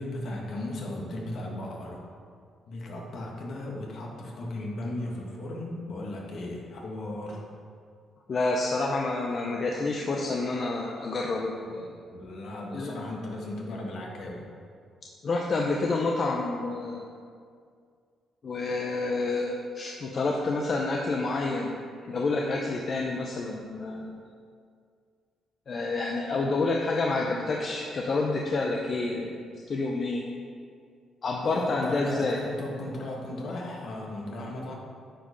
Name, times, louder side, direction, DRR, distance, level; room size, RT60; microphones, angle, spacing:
voice 1, 0.0-2.0 2.7-7.4 11.7-14.5 22.0-22.1 31.4-34.7, left 1 dB, 65° left, -1 dB, 1.7 m, -36 dB
voice 2, 8.3-11.9 12.7-13.0 15.2-17.1 18.4-21.7 22.1-24.2 25.7-30.2 31.2-32.4, left 3 dB, 45° left, 0 dB, 0.7 m, -28 dB
8.8 x 5.2 x 5.2 m, 2.2 s
cardioid pair, 90°, 0 cm